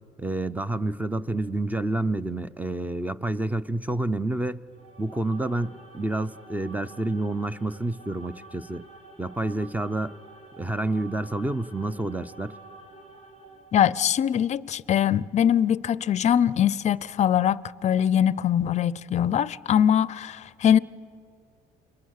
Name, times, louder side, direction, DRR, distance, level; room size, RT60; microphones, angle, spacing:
voice 1, 0.2-4.6 5.0-8.8 9.2-10.1 10.6-12.5, right 2 dB, 10° right, 0.5 m, -28 dB
sound 1, 4.6-14.1, right 3 dB, 35° right, 4.5 m, -49 dB
voice 2, 13.7-20.8, left 9 dB, 45° left, 0.5 m, -22 dB
29.0 x 22.0 x 6.5 m
cardioid pair, 110°, 17 cm